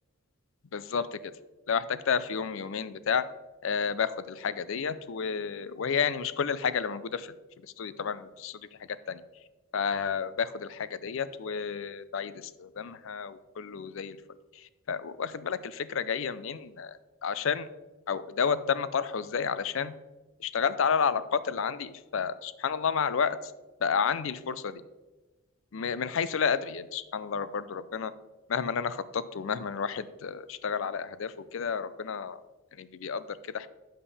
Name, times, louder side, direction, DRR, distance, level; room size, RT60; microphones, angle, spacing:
voice 1, 0.7-1.3 1.7-3.2 3.6-7.3 7.6-9.2 9.7-14.2 14.5-17.7 18.1-19.9 20.4-23.5 23.8-24.8 25.7-28.1 28.5-32.4 32.7-33.7, left 6 dB, 65° left, 15 dB, 0.4 m, -31 dB
8.7 x 7.1 x 3.4 m, 1.1 s
head